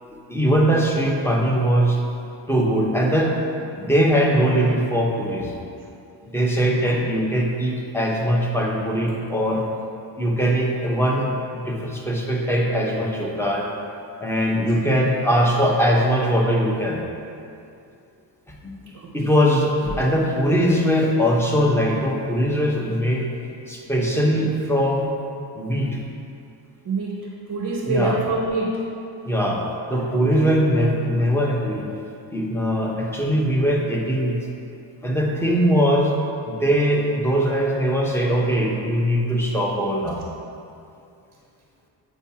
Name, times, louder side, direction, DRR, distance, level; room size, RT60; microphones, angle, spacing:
voice 1, 0.1-2.0 2.5-3.3 3.8-5.5 6.3-9.6 10.2-13.7 14.2-17.0 18.5-18.6 19.1-23.2 23.7-25.1 25.5-26.0 27.9-28.2 29.2-31.9 32.3-34.4 35.0-36.1 36.5-40.2, equal, 5° left, -2 dB, 0.9 m, -21 dB
voice 2, 18.9-19.5 26.9-28.9 30.1-30.6, right 2 dB, 40° right, 0 dB, 0.7 m, -27 dB
8.8 x 4.7 x 2.8 m, 2.5 s
cardioid pair, 90°, 45 cm